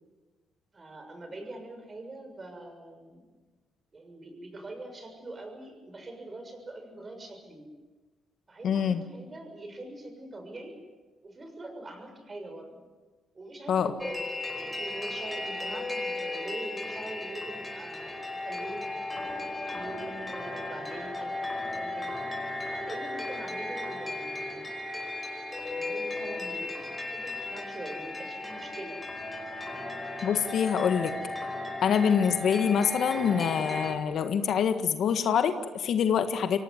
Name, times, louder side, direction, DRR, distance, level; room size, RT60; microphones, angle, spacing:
voice 1, 0.7-3.2 3.9-7.7 8.5-10.8 11.2-12.8 13.3-14.3 14.5-18.8 19.3-22.1 22.7-24.7 25.6-26.8 27.1-29.0, right 2 dB, 30° right, 5 dB, 6.7 m, -43 dB
voice 2, 8.6-9.0 13.7-13.9 30.2-31.1 31.8-36.6, left 7 dB, 70° left, 8 dB, 1.6 m, -25 dB
sound 1, 14.0-34.0, left 2 dB, 10° left, 5.1 m, -35 dB
25.0 x 17.5 x 9.6 m, 1.3 s
cardioid pair, 90°, 0 cm